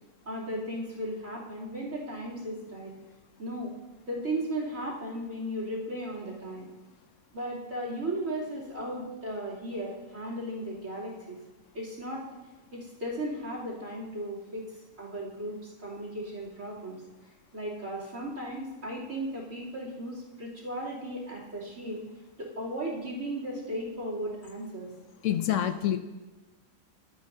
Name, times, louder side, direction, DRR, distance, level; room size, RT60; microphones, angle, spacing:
voice 1, 0.2-2.9 3.4-3.7 4.1-6.7 7.3-11.4 11.7-12.3 12.7-17.0 17.5-22.0 22.4-24.9, right 1 dB, 65° right, -5 dB, 3.3 m, -36 dB
voice 2, 25.2-26.0, left 11 dB, 70° left, 9 dB, 0.9 m, -26 dB
13.0 x 9.5 x 2.7 m, 1.2 s
omnidirectional pair, 1.5 m